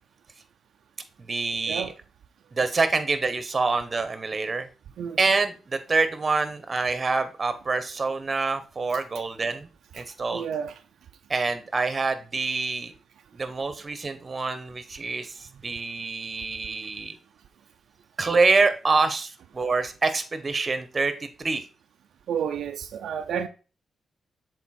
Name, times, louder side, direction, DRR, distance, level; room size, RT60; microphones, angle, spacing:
voice 1, 1.2-1.9 2.5-4.7 5.2-9.7 9.9-10.4 11.3-12.9 13.3-17.2 18.2-21.1 21.4-21.6, right 3 dB, 35° right, 1.0 m, -26 dB
voice 2, 10.3-10.8 15.5-15.6 22.3-23.5, right 8 dB, 85° right, 0.5 m, -31 dB
7.2 x 4.0 x 4.2 m
cardioid pair, 85°, 0 cm